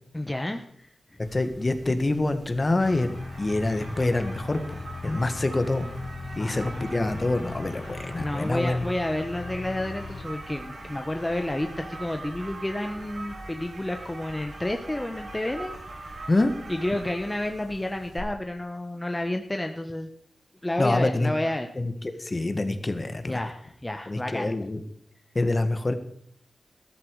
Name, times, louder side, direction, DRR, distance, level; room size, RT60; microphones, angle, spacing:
voice 1, 0.1-0.9 2.9-3.0 6.4-6.9 8.1-15.7 16.2-16.3 16.7-20.1 20.6-21.7 23.3-24.5, left 1 dB, 20° left, 5 dB, 1.3 m, -30 dB
voice 2, 1.2-3.1 3.4-5.9 6.4-8.8 16.3-16.5 20.8-21.3 21.8-21.9 22.2-23.4 24.1-24.8 25.4-25.9, left 2 dB, 35° left, 9 dB, 1.9 m, -26 dB
sound 1, 1.2-18.2, right 2 dB, 75° right, 7.0 m, -42 dB
sound 2, 2.8-10.3, left 4 dB, 80° left, 1.6 m, -39 dB
14.0 x 13.5 x 4.9 m, 0.65 s
wide cardioid pair, 70°, 0 cm